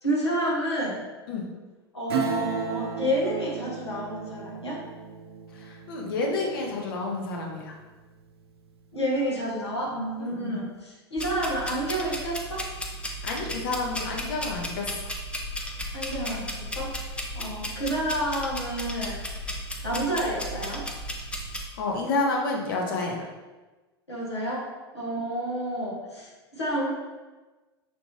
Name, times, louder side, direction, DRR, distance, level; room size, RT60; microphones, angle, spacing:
voice 1, 0.0-1.0 1.9-4.8 8.9-12.7 15.9-17.0 17.3-19.2 19.8-20.8 24.1-26.9, right 1 dB, 80° left, -5 dB, 1.1 m, -29 dB
Acoustic guitar / Strum, 2.1-8.3 8.7-8.8, right 5 dB, 65° right, 0.6 m, -35 dB
voice 2, 5.5-7.7 10.2-10.6 13.2-15.0 21.8-23.3, left 3 dB, 55° left, 0 dB, 0.9 m, -29 dB
sound 1, 11.2-21.6, equal, 10° left, 0.6 m, -35 dB
6.1 x 2.6 x 3.0 m, 1.2 s
figure-of-eight pair, 90°, 14 cm